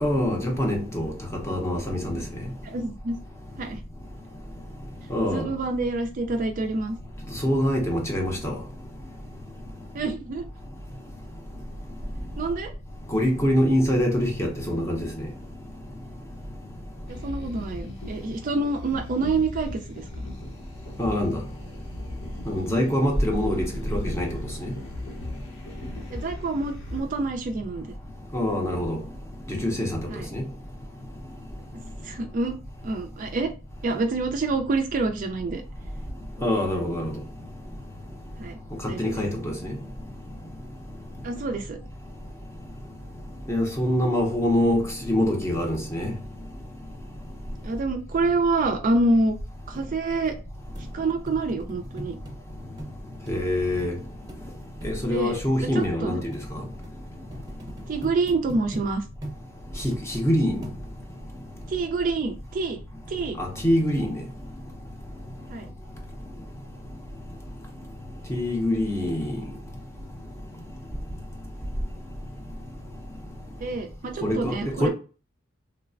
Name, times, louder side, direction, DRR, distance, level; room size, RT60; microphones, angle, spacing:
voice 1, 0.0-1.1 1.5-2.2 5.1-5.5 7.4-8.6 13.1-15.3 21.0-21.4 22.5-24.3 24.6-24.7 28.3-29.0 29.5-30.0 30.3-30.4 36.4-37.1 38.8-39.8 43.5-46.1 53.3-53.9 54.8-56.4 59.8-60.6 63.4-64.2 68.3-69.4 74.2-74.9, left 1 dB, 15° left, 0.6 m, -24 dB
voice 2, 2.6-3.2 3.6-3.8 5.3-7.0 9.9-10.5 12.4-12.7 17.1-20.3 26.1-27.9 30.1-30.3 32.0-32.5 32.8-33.5 33.8-35.6 38.4-38.6 38.9-39.2 41.2-41.8 47.6-49.4 49.7-50.4 50.9-52.2 55.1-55.4 55.7-56.2 57.9-59.0 61.7-62.8 63.1-63.4 65.5-65.7 73.6-74.9, right 3 dB, 40° right, 0.3 m, -27 dB
sound 1, 17.1-27.0, left 1 dB, 55° left, 0.9 m, -39 dB
sound 2, 49.7-49.9 50.3-50.4 50.8-50.9 51.3-52.4 52.8-53.0 53.3-53.4 53.8-53.9 54.3-54.4 54.8-55.0 55.3-55.4 55.8-55.9 56.3-56.5 56.8-57.0 57.3-58.9 59.2-59.4 59.9-60.3 60.6-61.1 61.6-61.7, right 1 dB, 15° right, 0.8 m, -40 dB
3.1 x 2.0 x 2.4 m
head